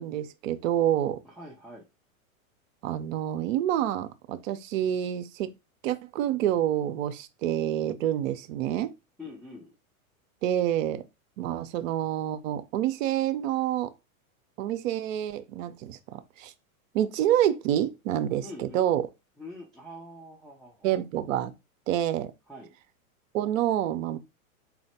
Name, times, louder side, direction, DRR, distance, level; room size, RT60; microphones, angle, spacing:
voice 1, 0.0-1.2 2.8-5.5 5.8-8.9 10.4-11.0 11.4-13.9 14.6-16.5 16.9-19.0 20.8-21.5 21.9-22.3 23.3-24.2, right 11 dB, 65° right, 0.7 m, -27 dB
voice 2, 1.2-1.9 9.2-9.7 18.4-18.8 19.4-20.9 22.5-22.7, left 1 dB, ahead, 0.6 m, -44 dB
4.1 x 2.1 x 4.2 m
hypercardioid pair, 120°, 42 cm